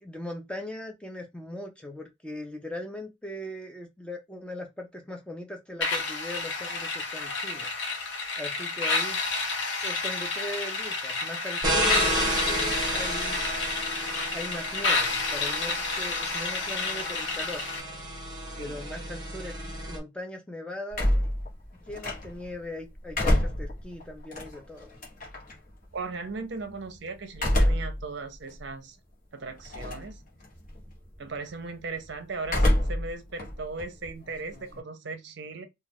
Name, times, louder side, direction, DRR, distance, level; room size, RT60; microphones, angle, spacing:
voice 1, 0.0-7.7 8.4-9.2 9.8-13.4 14.3-17.6 18.6-21.1 21.8-24.9, left 1 dB, 5° left, 0.3 m, -39 dB
sound 1, 5.8-17.8, left 3 dB, 65° left, 0.7 m, -30 dB
sound 2, 11.6-20.0, right 1 dB, 20° right, 0.7 m, -32 dB
sound 3, 20.9-22.5 22.9-25.5 27.3-28.0 28.5-28.6 29.7-30.1 30.4-30.9 32.4-33.1 33.4-34.8, left 1 dB, 40° left, 1.0 m, -26 dB
voice 2, 25.9-29.0 29.3-30.2 31.2-35.7, right 3 dB, 55° right, 0.5 m, -37 dB
2.3 x 2.3 x 3.3 m
head